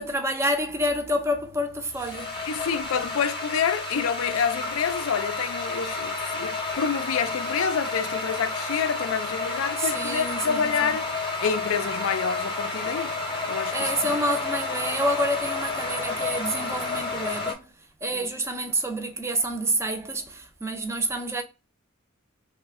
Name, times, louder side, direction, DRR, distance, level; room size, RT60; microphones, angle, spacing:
voice 1, 0.0-2.5 9.8-11.0 13.7-17.6 18.0-21.4, right 1 dB, 10° right, 0.5 m, -28 dB
sound 1, 1.4-17.5, left 3 dB, 25° left, 0.8 m, -31 dB
voice 2, 2.5-11.1 11.4-13.1 13.5-13.9 18.1-18.3, left 6 dB, 65° left, 0.4 m, -28 dB
3.1 x 2.2 x 3.4 m
head